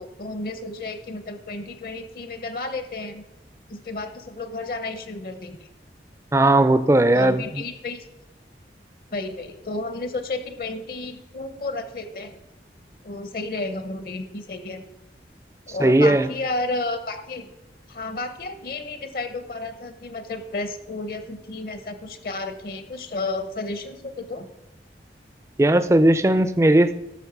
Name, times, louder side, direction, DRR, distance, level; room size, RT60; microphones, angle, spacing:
voice 1, 0.0-3.2 3.7-5.7 7.1-8.0 9.1-12.4 13.0-14.8 15.7-17.5 17.9-24.5, left 2 dB, 55° left, 9 dB, 0.8 m, -32 dB
voice 2, 6.3-7.6 15.8-16.3 25.6-26.9, right 1 dB, 15° right, 12 dB, 0.4 m, -17 dB
12.5 x 6.1 x 5.9 m, 0.93 s
head